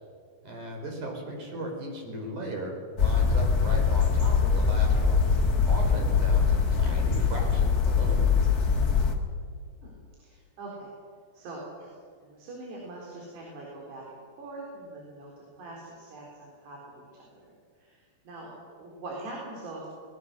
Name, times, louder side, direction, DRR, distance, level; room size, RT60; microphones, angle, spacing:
voice 1, 0.4-5.3 5.6-8.4, right 1 dB, 50° right, 1 dB, 5.8 m, -37 dB
sound 1, 3.0-9.2, left 5 dB, 40° left, 1.5 m, -23 dB
voice 2, 9.8-10.9 11.3-11.9 12.2-19.9, right 2 dB, 85° right, -3 dB, 5.9 m, -43 dB
23.5 x 21.0 x 6.6 m, 2.1 s
omnidirectional pair, 4.6 m